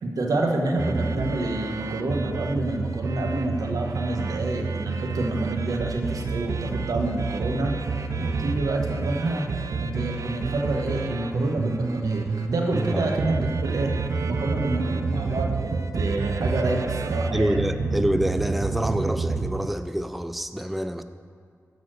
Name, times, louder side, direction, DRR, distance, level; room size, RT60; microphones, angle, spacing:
voice 1, 0.0-7.8 8.2-9.4 9.8-13.9 14.2-17.6, right 2 dB, 90° right, 1 dB, 1.1 m, -28 dB
sound 1, 0.8-19.7, right 4 dB, 65° right, 0.5 m, -29 dB
voice 2, 17.3-21.0, equal, ahead, 10 dB, 0.3 m, -26 dB
10.5 x 4.2 x 6.3 m, 2.3 s
wide cardioid pair, 80°, 6 cm